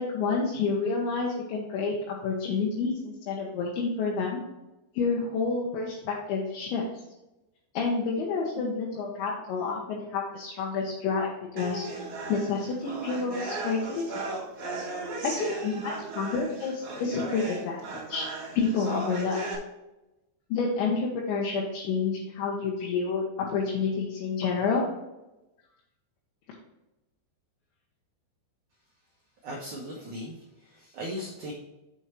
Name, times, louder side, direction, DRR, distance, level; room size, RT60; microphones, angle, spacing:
voice 1, 0.0-4.4 4.9-6.8 7.7-11.9 12.3-14.2 15.2-18.3 18.5-19.4 20.5-23.2 23.5-24.9, left 4 dB, 75° left, -3 dB, 3.3 m, -29 dB
sound 1, 11.6-19.6, right 2 dB, 45° right, 2.5 m, -37 dB
voice 2, 29.4-31.5, equal, 90° right, -2 dB, 1.7 m, -38 dB
7.2 x 7.1 x 3.2 m, 0.97 s
omnidirectional pair, 5.5 m